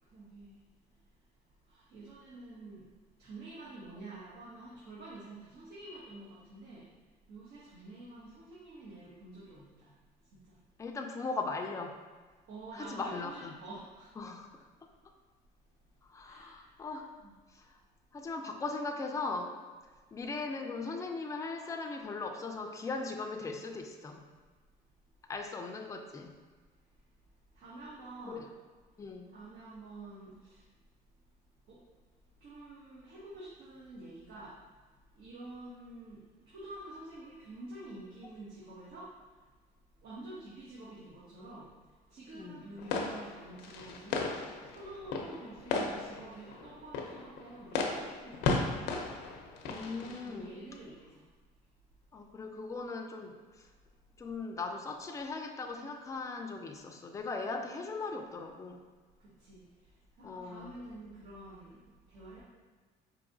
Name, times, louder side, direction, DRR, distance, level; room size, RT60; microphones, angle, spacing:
voice 1, 0.0-0.6 1.7-2.9 3.2-9.9 10.2-10.6 12.5-14.1 16.2-16.8 17.2-17.3 27.5-28.4 29.3-30.7 31.7-31.8 32.4-34.8 35.1-39.5 40.0-44.3 44.6-49.0 50.0-51.3 59.2-62.4, right 2 dB, 70° right, -7 dB, 0.9 m, -49 dB
voice 2, 10.8-12.0 12.7-13.5 14.2-14.6 16.1-17.1 17.5-17.8 18.1-19.6 20.1-24.2 25.3-26.3 28.3-28.5 29.0-29.3 42.3-42.6 49.7-50.5 52.1-53.7 54.2-58.8 60.2-60.7, left 3 dB, 20° left, 3 dB, 0.4 m, -39 dB
sound 1, 42.8-50.4, left 4 dB, 80° left, 0.5 m, -36 dB
4.7 x 2.7 x 2.6 m, 1.4 s
cardioid pair, 110°, 17 cm